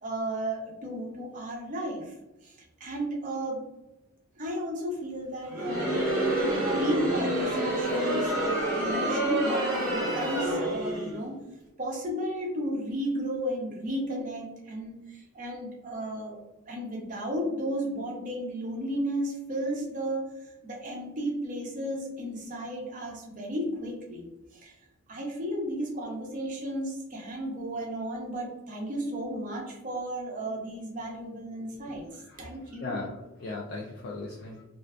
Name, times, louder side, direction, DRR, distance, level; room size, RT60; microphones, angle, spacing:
voice 1, 0.0-2.1 2.4-2.6 2.8-3.6 4.4-5.9 6.3-11.3 11.8-16.4 16.6-20.3 20.6-24.3 24.5-24.8 25.1-32.0 32.4-33.0, equal, 40° right, -1 dB, 0.6 m, -33 dB
Crowd, 5.5-11.2, right 1 dB, 15° right, 0.9 m, -28 dB
voice 2, 32.8-34.6, left 2 dB, 50° left, -2 dB, 0.3 m, -37 dB
2.5 x 2.2 x 2.3 m, 0.98 s
head